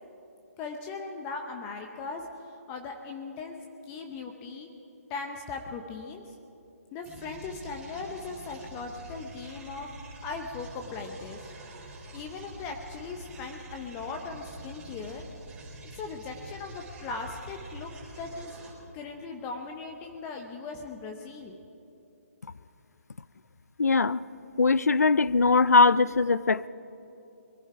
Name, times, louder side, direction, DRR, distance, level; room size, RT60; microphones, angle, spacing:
voice 1, 0.6-3.6 3.9-4.7 5.1-6.3 6.9-9.9 10.2-11.4 12.1-15.2 15.8-17.9 18.2-21.6, left 4 dB, 20° left, 0.8 m, -39 dB
sound 1, 7.0-18.7, right 1 dB, 10° right, 3.0 m, -46 dB
voice 2, 23.8-24.2 24.6-26.7, left 4 dB, 90° left, 0.4 m, -21 dB
22.5 x 11.0 x 4.8 m
figure-of-eight pair, 150°, 8 cm